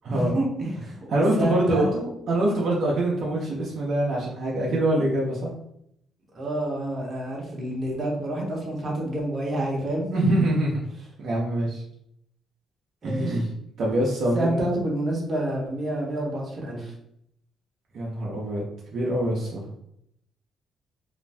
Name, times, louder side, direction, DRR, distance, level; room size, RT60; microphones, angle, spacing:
voice 1, 0.1-2.1 6.3-10.3 13.0-13.4 14.3-16.9, right 1 dB, 40° right, -2 dB, 0.9 m, -28 dB
voice 2, 1.1-2.0 2.3-5.5 10.1-10.7 11.2-11.8 13.0-13.4 13.8-14.6 17.9-18.6 18.9-19.7, right 1 dB, 65° right, -4 dB, 0.7 m, -24 dB
2.6 x 2.2 x 3.3 m, 0.74 s
cardioid pair, 90°, 0 cm